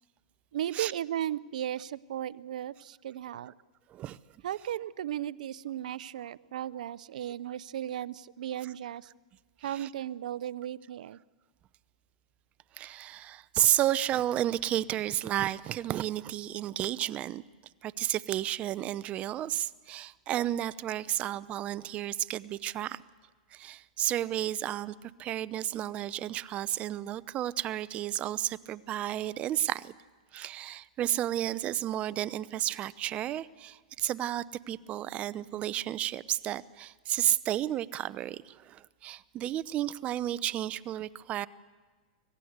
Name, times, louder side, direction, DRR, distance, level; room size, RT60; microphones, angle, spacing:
voice 1, 0.5-3.5 4.4-9.1 9.6-11.2, right 11 dB, 75° right, 20 dB, 0.6 m, -36 dB
voice 2, 12.8-17.4 17.8-23.0 23.5-29.9 30.3-41.5, right 12 dB, 30° right, 19 dB, 0.7 m, -32 dB
25.0 x 18.0 x 8.1 m, 1.4 s
hypercardioid pair, 130°, 4 cm